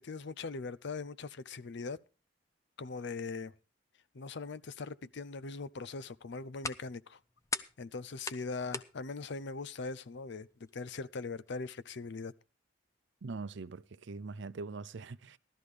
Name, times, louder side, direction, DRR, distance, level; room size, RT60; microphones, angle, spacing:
voice 1, 0.0-2.0 2.8-3.5 4.1-7.2 7.8-12.3, left 4 dB, 65° left, 0.6 m, -41 dB
sound 1, 6.1-11.9, left 4 dB, 15° left, 0.7 m, -45 dB
voice 2, 13.2-15.4, right 4 dB, 70° right, 0.6 m, -42 dB
16.5 x 12.5 x 3.4 m
head